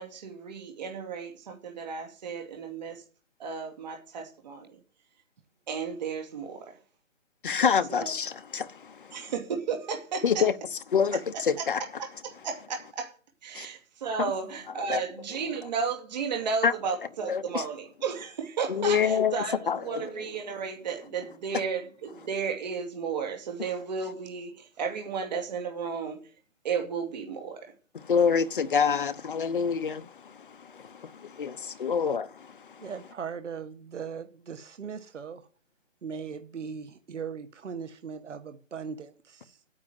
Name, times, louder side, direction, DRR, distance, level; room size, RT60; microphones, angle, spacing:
voice 1, 0.0-3.0 3.4-4.8 5.7-6.8 7.9-8.1 9.1-10.5 11.6-13.1 13.4-26.3 26.6-27.7, right 5 dB, 35° right, 2.4 m, -34 dB
voice 2, 7.4-9.2 10.2-10.5 10.9-11.8 13.5-13.7 14.9-15.0 16.6-16.7 17.3-17.6 18.7-20.1 28.0-32.9, left 6 dB, 40° left, 0.9 m, -27 dB
voice 3, 32.8-35.5 36.0-39.6, right 6 dB, 65° right, 1.5 m, -39 dB
9.5 x 8.5 x 9.2 m
hypercardioid pair, 165°, 39 cm